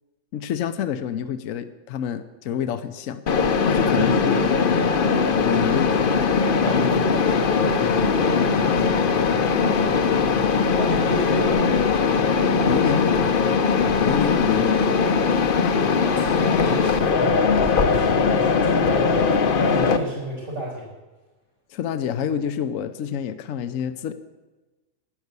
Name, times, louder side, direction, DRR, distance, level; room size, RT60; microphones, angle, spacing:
voice 1, 0.3-3.2 3.7-4.3 5.4-6.3 12.6-13.5 14.0-15.0 21.7-24.1, left 8 dB, 70° left, 10 dB, 1.0 m, -27 dB
Mechanisms, 3.3-20.0, left 5 dB, 45° left, 0.8 m, -20 dB
voice 2, 3.8-5.2 6.6-9.2 9.7-10.1 10.8-11.8 16.0-20.9, equal, 70° right, -7 dB, 5.8 m, -32 dB
12.0 x 10.5 x 8.1 m, 1.2 s
omnidirectional pair, 1.5 m